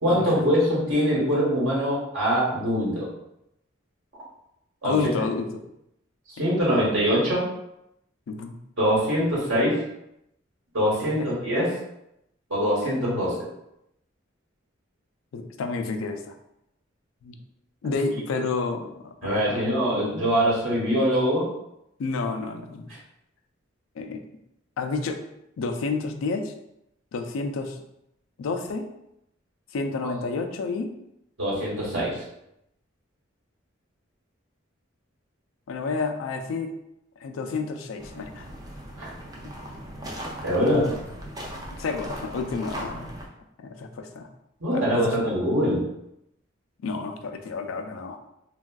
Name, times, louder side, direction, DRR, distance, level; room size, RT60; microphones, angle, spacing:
voice 1, 0.0-3.1 4.8-5.0 6.3-7.4 8.8-9.8 10.7-11.7 12.5-13.5 19.2-21.5 31.4-32.2 39.0-39.1 40.4-40.9 44.6-45.8, equal, 70° right, -6 dB, 1.1 m, -23 dB
voice 2, 4.8-5.6 6.4-6.5 8.3-8.6 11.0-11.3 15.3-16.3 17.2-17.3 17.8-19.7 22.0-22.9 24.0-24.2 24.8-25.2 25.6-26.5 27.1-27.8 28.4-28.9 29.7-30.9 35.7-36.7 37.2-38.5 41.8-43.1 43.6-44.3 44.7-45.3 46.8-48.2, left 4 dB, 80° left, 6 dB, 0.3 m, -30 dB
sound 1, 38.0-43.3, equal, 20° right, 0.4 m, -38 dB
3.3 x 2.3 x 2.3 m, 0.82 s
head